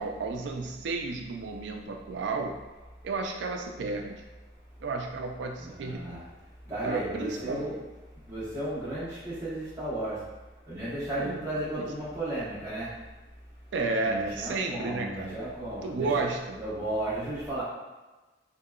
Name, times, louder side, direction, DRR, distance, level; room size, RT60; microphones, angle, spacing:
voice 1, 0.0-2.5 3.0-4.1 4.8-6.2 6.8-7.8 11.2-11.4 11.8-11.9 13.7-15.4 15.8-16.6, right 3 dB, 75° right, 3 dB, 0.4 m, -32 dB
voice 2, 5.6-7.8 8.1-10.3 10.7-13.0 14.0-16.3 16.5-17.6, right 1 dB, 20° right, -10 dB, 1.0 m, -34 dB
2.7 x 2.2 x 2.3 m, 1.2 s
head